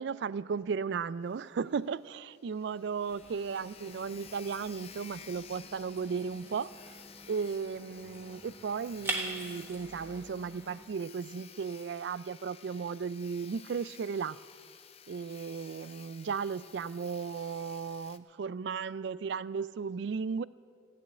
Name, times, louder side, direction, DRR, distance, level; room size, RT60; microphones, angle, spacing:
voice 1, 0.0-6.9 7.3-14.4 15.1-20.4, right 5 dB, 60° right, 0.3 m, -35 dB
Sawing, 1.3-1.4 1.7-1.8 2.2-2.3 2.5-18.2, left 8 dB, 30° left, 0.5 m, -53 dB
sound 1, 3.1-10.8, right 2 dB, 10° right, 1.3 m, -44 dB
16.0 x 7.3 x 9.8 m
head